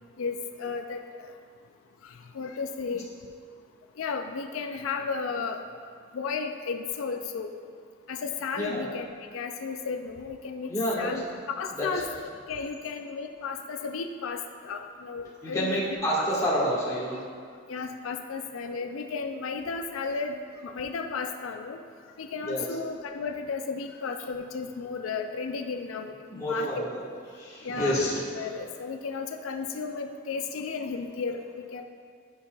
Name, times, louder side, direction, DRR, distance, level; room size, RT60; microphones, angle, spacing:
voice 1, 0.2-1.3 2.0-3.1 4.0-5.6 6.1-7.5 8.1-9.1 9.3-10.7 11.0-11.2 11.6-12.1 12.5-16.0 17.7-21.8 22.2-26.7 27.6-28.0 28.3-31.4 31.7-31.8, left 5 dB, 75° left, 5 dB, 0.4 m, -34 dB
voice 2, 10.7-11.2 11.8-11.9 15.4-17.2 22.4-22.6 26.3-26.9 27.3-28.5, equal, 15° left, -8 dB, 1.5 m, -28 dB
11.0 x 5.4 x 2.3 m, 2.1 s
head